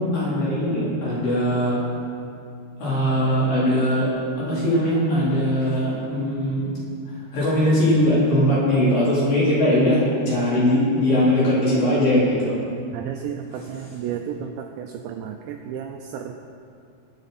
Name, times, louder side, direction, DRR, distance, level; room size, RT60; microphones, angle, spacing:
voice 1, 0.1-1.8 2.8-4.1 4.4-6.7 7.3-12.5, equal, 45° left, -8 dB, 4.9 m, -20 dB
voice 2, 12.9-16.3, right 8 dB, 90° right, 4 dB, 2.5 m, -33 dB
22.5 x 9.2 x 4.2 m, 2.5 s
omnidirectional pair, 5.9 m